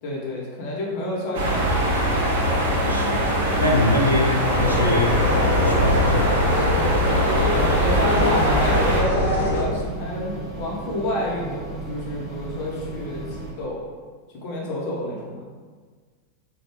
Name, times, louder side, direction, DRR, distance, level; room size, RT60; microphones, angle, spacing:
voice 1, 0.0-2.1 7.4-13.2 13.6-13.8 14.4-15.4, left 1 dB, 45° left, -4 dB, 0.9 m, -29 dB
sound 1, 1.3-9.0, equal, 55° right, 0.7 m, -22 dB
voice 2, 2.9-6.4, left 1 dB, 85° right, 0 dB, 0.4 m, -24 dB
sound 2, 4.4-9.6, left 1 dB, 75° left, 0.7 m, -23 dB
sound 3, 7.5-13.5, right 3 dB, 15° right, 0.8 m, -35 dB
3.1 x 2.3 x 3.2 m, 1.5 s
figure-of-eight pair, 90°, 0 cm